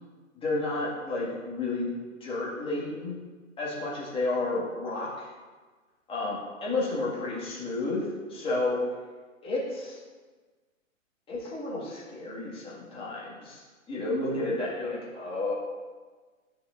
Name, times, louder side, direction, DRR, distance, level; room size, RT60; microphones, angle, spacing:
voice 1, 0.4-1.9 2.2-3.2 3.6-5.3 6.1-8.8 9.4-10.0 11.3-13.6 13.9-15.5, left 2 dB, 15° left, -6 dB, 1.9 m, -31 dB
11.5 x 6.5 x 2.6 m, 1.4 s
hypercardioid pair, 125°, 40 cm